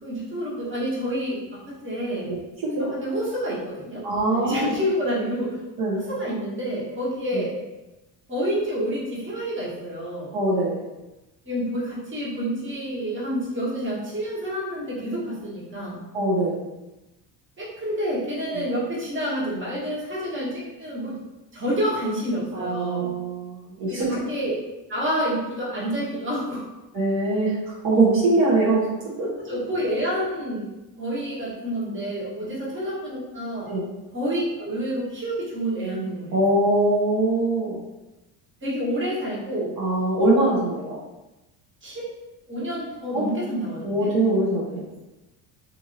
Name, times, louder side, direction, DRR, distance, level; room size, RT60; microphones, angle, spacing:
voice 1, 0.0-2.3 2.8-4.0 4.3-5.6 5.9-7.5 8.3-10.4 11.4-16.0 17.6-21.2 21.5-23.1 23.9-24.6 24.9-26.7 29.4-30.7 31.0-33.7 34.1-36.3 38.6-39.7 41.8-42.1 42.5-44.1, equal, 25° right, -6 dB, 1.3 m, -28 dB
voice 2, 2.3-2.9 4.0-4.8 5.8-6.0 7.3-7.4 10.3-10.8 16.1-16.6 18.5-18.7 22.5-24.0 26.9-27.5 27.8-28.8 29.2-29.6 33.7-33.8 36.3-37.8 39.8-41.0 43.1-43.3 43.8-44.8, right 2 dB, 50° right, -8 dB, 1.0 m, -22 dB
2.8 x 2.6 x 2.6 m, 1.0 s
supercardioid pair, 80°, 46 cm